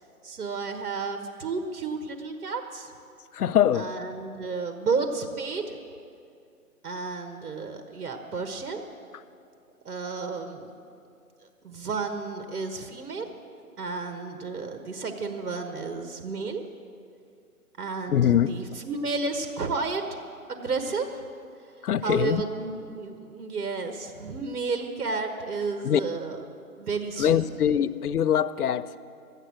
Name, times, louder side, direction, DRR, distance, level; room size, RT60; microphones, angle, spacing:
voice 1, 0.2-2.9 3.7-5.7 6.8-8.8 9.8-10.7 11.6-13.3 13.8-16.6 17.8-20.0 20.5-21.2 22.0-26.5 26.7-27.4, right 4 dB, 80° right, 6 dB, 1.3 m, -32 dB
voice 2, 3.3-3.9 18.1-18.5 21.8-22.4 25.8-26.0 27.2-29.0, left 10 dB, 80° left, 13 dB, 0.6 m, -23 dB
13.0 x 9.1 x 7.5 m, 2.4 s
hypercardioid pair, 160°, 45 cm